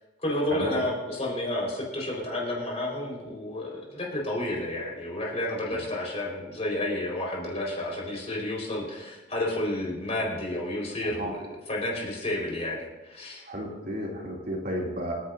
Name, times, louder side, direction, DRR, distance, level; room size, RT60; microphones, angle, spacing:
voice 1, 0.2-13.4, left 1 dB, 35° left, -2 dB, 4.5 m, -31 dB
voice 2, 13.4-15.1, equal, 50° right, -2 dB, 2.8 m, -32 dB
29.0 x 9.9 x 2.7 m, 1.1 s
head